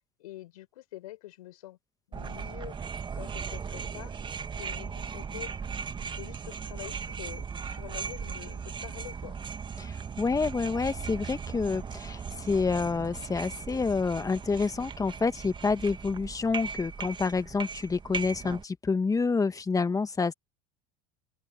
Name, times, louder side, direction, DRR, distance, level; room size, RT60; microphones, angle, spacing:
voice 1, 0.2-1.8 2.1-2.8 3.1-4.1 4.5-5.5 6.0-9.3, left 16 dB, 75° left, 4.8 m, -46 dB
sound 1, 2.1-18.6, right 6 dB, 25° right, 1.8 m, -38 dB
voice 2, 9.8-20.3, left 4 dB, 20° left, 1.7 m, -28 dB
open air
hypercardioid pair, 85°, 19 cm